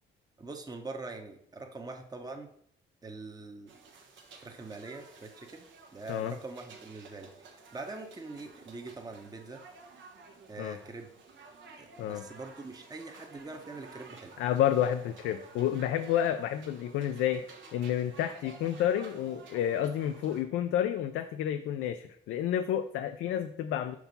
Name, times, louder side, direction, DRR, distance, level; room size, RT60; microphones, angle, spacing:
voice 1, 0.4-2.5 3.0-3.8 4.3-5.6 5.9-9.6 10.5-11.1 11.8-14.4, right 3 dB, 20° right, 4 dB, 0.9 m, -43 dB
sound 1, 3.7-20.4, right 4 dB, 70° right, 1.2 m, -53 dB
voice 2, 14.4-24.0, left 10 dB, 85° left, 7 dB, 0.5 m, -30 dB
5.7 x 4.7 x 5.3 m, 0.68 s
cardioid pair, 90°, 20 cm